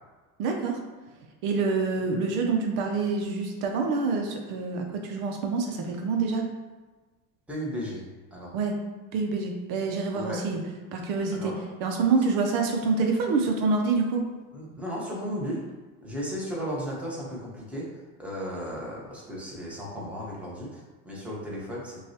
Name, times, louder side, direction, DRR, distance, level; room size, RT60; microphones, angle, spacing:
voice 1, 0.4-0.8 1.4-6.4 8.5-8.8 9.1-10.6 10.9-11.5 11.8-14.2, right 4 dB, 65° right, 2 dB, 0.7 m, -26 dB
voice 2, 7.5-8.0 8.3-8.5 10.1-10.4 11.3-11.5 14.5-15.6 16.0-17.8 18.2-22.0, equal, 5° right, -5 dB, 1.1 m, -35 dB
6.1 x 2.3 x 2.8 m, 1.3 s
cardioid pair, 130°, 36 cm